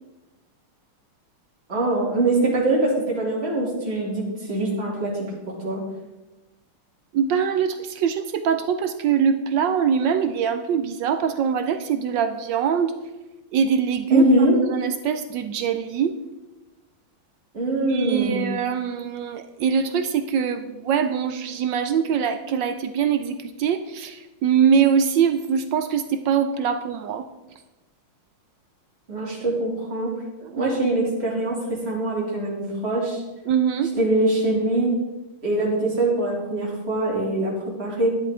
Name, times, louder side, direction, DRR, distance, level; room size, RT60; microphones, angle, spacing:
voice 1, 1.7-5.8 14.1-14.6 17.5-18.5 29.1-30.1 30.6-33.2 34.0-34.9 35.4-38.1, right 2 dB, 30° right, -4 dB, 2.9 m, -23 dB
voice 2, 7.1-13.0 13.5-14.2 14.7-16.1 17.9-27.2 30.4-30.7 33.5-33.9, right 7 dB, 75° right, 9 dB, 1.1 m, -23 dB
11.0 x 10.5 x 3.7 m, 1.1 s
omnidirectional pair, 2.3 m